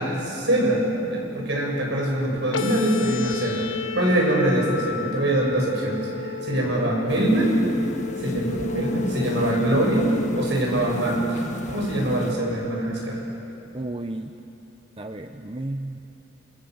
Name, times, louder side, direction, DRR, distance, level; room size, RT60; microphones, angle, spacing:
voice 1, 0.0-3.6 4.0-7.5 8.2-10.1 10.3-11.2 11.7-13.2, right 1 dB, 65° right, -1 dB, 7.7 m, -23 dB
sound 1, 2.5-10.5, left 6 dB, 90° left, 1.2 m, -34 dB
voice 2, 6.5-6.9 13.7-14.3 15.0-16.0, right 1 dB, 30° right, 6 dB, 0.7 m, -33 dB
sound 2, 7.1-12.3, left 1 dB, 40° left, 1.6 m, -34 dB
28.5 x 23.0 x 8.0 m, 2.9 s
head